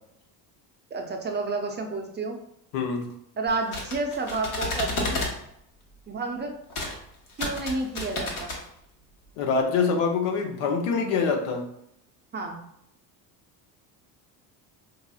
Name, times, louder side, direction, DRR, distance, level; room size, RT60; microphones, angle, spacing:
voice 1, 0.9-2.4 3.4-5.2 6.1-6.5 7.4-8.5 12.3-12.6, right 3 dB, 25° right, 3 dB, 0.4 m, -30 dB
voice 2, 2.7-3.1 9.4-11.7, left 5 dB, 80° left, 3 dB, 0.8 m, -25 dB
sound 1, 3.5-5.4 6.7-7.0 7.3-8.6, left 2 dB, 60° left, 1.1 m, -31 dB
4.0 x 2.8 x 2.3 m, 0.75 s
supercardioid pair, 95°, 43 cm